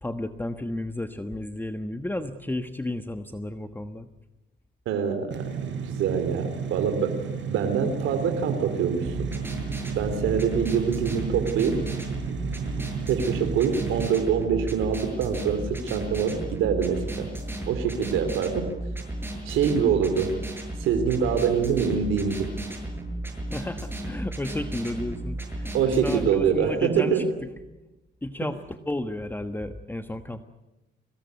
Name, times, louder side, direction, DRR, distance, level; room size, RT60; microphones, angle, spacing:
voice 1, 0.0-4.1 18.5-18.6 23.5-27.2 28.2-30.4, left 1 dB, 10° left, 8 dB, 1.3 m, -32 dB
voice 2, 4.8-7.2 7.5-9.3 9.9-11.8 13.1-17.3 17.7-18.6 19.4-20.3 20.8-22.5 25.7-27.3, right 7 dB, 90° right, 6 dB, 3.2 m, -25 dB
sound 1, 5.3-14.1, right 6 dB, 65° right, 5.2 m, -33 dB
sound 2, 9.0-26.2, right 1 dB, 10° right, 7.9 m, -34 dB
24.5 x 19.0 x 9.4 m, 0.99 s
cardioid pair, 90°, 20 cm